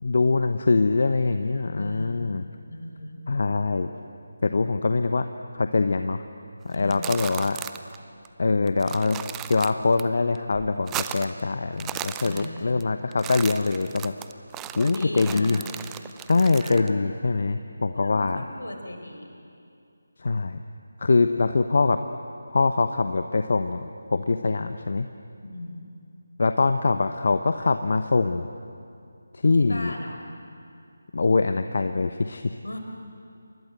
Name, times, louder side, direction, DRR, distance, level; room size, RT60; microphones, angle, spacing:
voice 1, 0.0-2.4 3.3-3.9 4.4-5.3 5.5-6.2 6.6-7.6 8.4-9.2 9.5-14.1 14.7-15.6 16.3-18.4 20.2-20.6 21.0-22.0 22.5-25.1 26.4-28.5 29.3-29.9 31.1-32.6, left 3 dB, 50° left, 9 dB, 1.0 m, -23 dB
voice 2, 1.7-2.3 2.7-3.2 6.7-7.2 12.2-12.8 14.8-15.7 16.5-17.0 17.9-19.4 25.4-25.8 29.5-30.2 32.6-32.8, left 1 dB, 70° left, 4 dB, 4.8 m, -37 dB
sound 1, 6.7-8.0 8.3-8.4 8.7-10.0 10.4-11.4 11.7-12.8 13.1-16.9, right 12 dB, 10° right, 0.6 m, -36 dB
28.5 x 24.0 x 8.0 m, 2.5 s
figure-of-eight pair, 155°, 0 cm